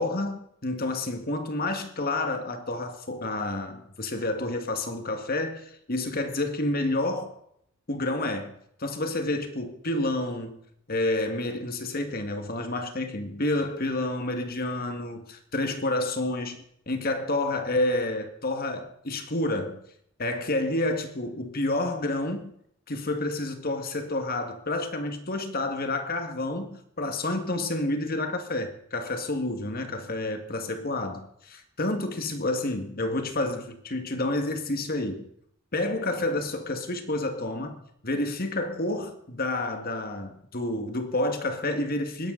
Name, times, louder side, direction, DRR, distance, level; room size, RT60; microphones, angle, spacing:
voice 1, 0.0-7.4 7.9-10.6 10.9-16.6 16.9-19.8 20.2-22.5 22.9-35.3 35.7-42.3, left 2 dB, 45° left, 1.8 m, -29 dB
20.0 x 11.0 x 4.0 m
head